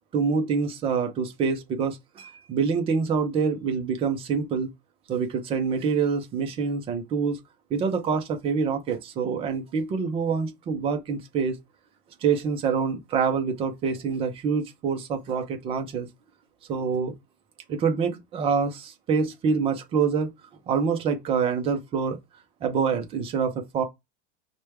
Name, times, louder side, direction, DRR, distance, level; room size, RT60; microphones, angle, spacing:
voice 1, 0.1-4.7 5.1-7.4 7.7-11.6 12.2-16.1 16.7-17.1 17.7-20.3 20.7-22.2 22.6-23.8, right 5 dB, 20° right, 0.4 m, -26 dB
4.9 x 2.2 x 4.5 m
cardioid pair, 180°, 30 cm